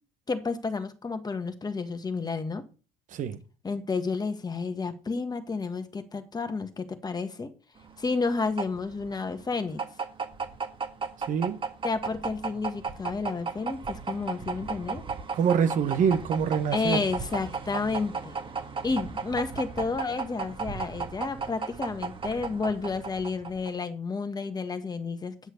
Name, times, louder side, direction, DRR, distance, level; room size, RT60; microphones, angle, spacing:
voice 1, 0.3-2.6 3.6-7.5 8.0-9.8 11.8-15.1 16.7-18.4 18.8-25.3, left 4 dB, 25° left, 1.7 m, -31 dB
sound 1, 7.8-23.8, right 5 dB, 30° right, 1.8 m, -35 dB
voice 2, 15.3-17.0, right 7 dB, 55° right, 1.4 m, -25 dB
10.0 x 6.5 x 6.5 m
hypercardioid pair, 70°, 16 cm